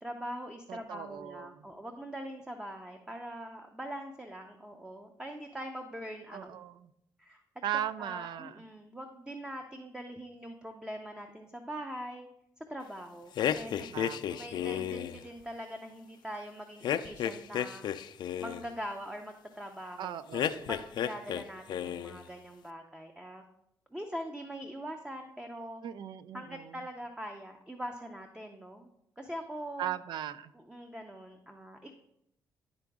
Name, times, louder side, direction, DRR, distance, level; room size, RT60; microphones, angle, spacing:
voice 1, 0.0-6.5 7.2-7.4 8.0-12.3 12.7-13.9 14.4-18.0 18.4-20.2 20.7-23.4 23.9-25.8 26.3-28.9 29.2-29.9 30.5-31.9, equal, 10° right, 4 dB, 0.7 m, -42 dB
voice 2, 0.7-1.7 6.3-6.9 7.6-8.6 13.8-15.0 20.0-20.7 25.8-26.8 29.8-30.5, right 10 dB, 75° right, 15 dB, 0.4 m, -38 dB
sound 1, 13.4-15.2 16.8-18.7 20.3-21.4 21.7-22.2, left 10 dB, 70° left, 0.4 m, -32 dB
11.0 x 3.9 x 3.5 m, 0.77 s
cardioid pair, 75°, 8 cm